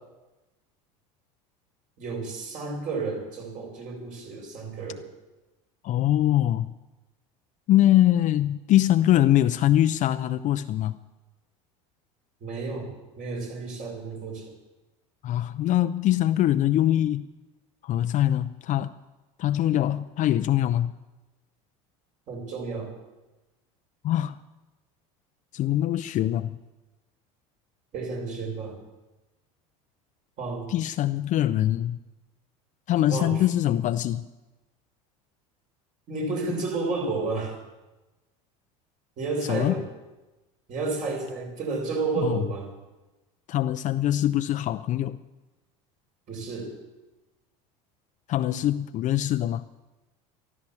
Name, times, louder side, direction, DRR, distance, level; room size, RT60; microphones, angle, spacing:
voice 1, 2.0-5.1 12.4-14.5 22.3-22.9 27.9-28.8 30.4-30.7 33.1-33.4 36.1-37.6 39.2-39.9 40.7-42.7 46.3-46.8, right 3 dB, 45° right, 6.0 m, -31 dB
voice 2, 5.8-6.7 7.7-10.9 15.2-17.3 17.8-18.9 19.4-20.9 24.0-24.4 25.5-26.6 30.7-32.0 32.9-34.2 39.5-39.7 42.2-42.4 43.5-45.2 48.3-49.6, left 12 dB, 45° left, 0.6 m, -23 dB
13.5 x 13.0 x 7.3 m
supercardioid pair, 95°, 18 cm